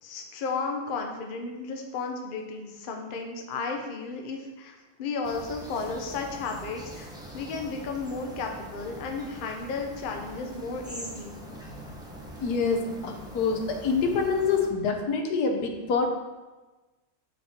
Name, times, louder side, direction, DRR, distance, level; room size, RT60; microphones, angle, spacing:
voice 1, 0.0-11.4, left 4 dB, 45° left, 3 dB, 0.7 m, -34 dB
sound 1, 5.2-14.7, right 1 dB, 5° right, 0.7 m, -43 dB
voice 2, 12.4-16.1, left 5 dB, 85° left, 4 dB, 1.4 m, -26 dB
6.1 x 4.3 x 4.3 m, 1.2 s
omnidirectional pair, 1.6 m